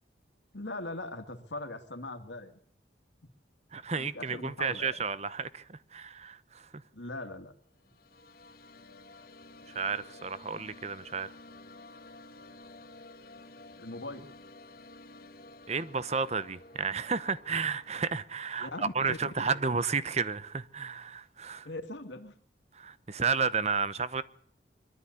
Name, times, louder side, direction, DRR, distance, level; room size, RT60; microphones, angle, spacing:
voice 1, 0.5-2.6 4.0-5.0 6.9-7.5 13.8-14.3 18.6-19.6 21.6-22.3, left 2 dB, 75° left, 2.3 m, -40 dB
voice 2, 3.7-6.7 9.7-11.3 15.7-21.7 22.7-24.2, right 5 dB, 35° right, 0.9 m, -32 dB
sound 1, 7.7-17.9, left 2 dB, 55° left, 1.7 m, -52 dB
23.0 x 13.0 x 9.8 m
head